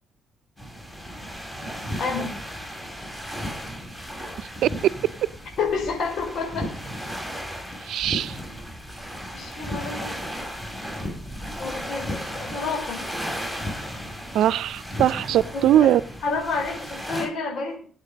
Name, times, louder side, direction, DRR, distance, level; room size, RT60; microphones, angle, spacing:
sound 1, 0.6-17.2, equal, 5° left, 7.2 m, -34 dB
voice 1, 2.0-2.3 5.6-6.7 9.3-10.2 11.6-13.0 15.5-15.9 16.2-17.9, left 4 dB, 65° left, 1 dB, 5.0 m, -29 dB
voice 2, 4.4-4.7 7.8-8.4 14.3-16.0, right 12 dB, 80° right, 18 dB, 0.7 m, -21 dB
21.0 x 8.3 x 5.3 m, 0.43 s
cardioid pair, 90°, 0 cm